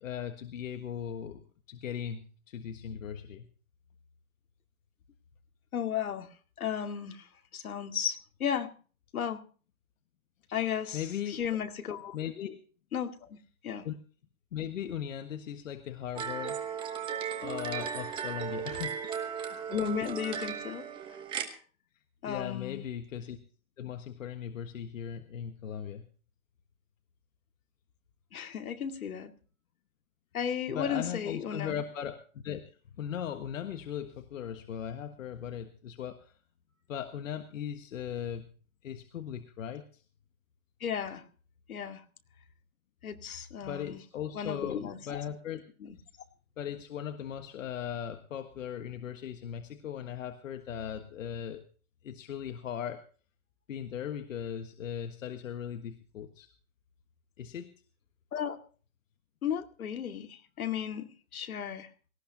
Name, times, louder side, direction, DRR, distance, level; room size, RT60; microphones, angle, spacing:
voice 1, 0.0-3.5 10.9-11.4 12.1-12.6 13.8-14.0 14.5-16.6 17.4-19.0 22.3-23.4 23.8-26.0 30.7-32.6 33.0-36.4 36.9-38.5 38.8-40.0 43.6-45.6 46.6-51.6 52.0-53.0 53.7-56.5 57.4-57.7, left 9 dB, 65° left, 6 dB, 1.6 m, -38 dB
voice 2, 5.7-6.3 6.6-7.3 7.5-8.7 9.1-9.4 10.5-12.2 12.9-13.4 13.6-13.8 19.7-20.9 22.2-22.8 28.3-29.3 30.3-31.7 40.8-41.2 41.7-42.0 43.0-44.0 44.3-45.2 45.8-46.0 58.3-58.6 59.4-61.9, left 8 dB, 80° left, 5 dB, 2.3 m, -34 dB
sound 1, 16.2-21.5, right 8 dB, 10° right, 1.1 m, -36 dB
18.5 x 16.5 x 2.8 m, 0.39 s
hypercardioid pair, 160°, 42 cm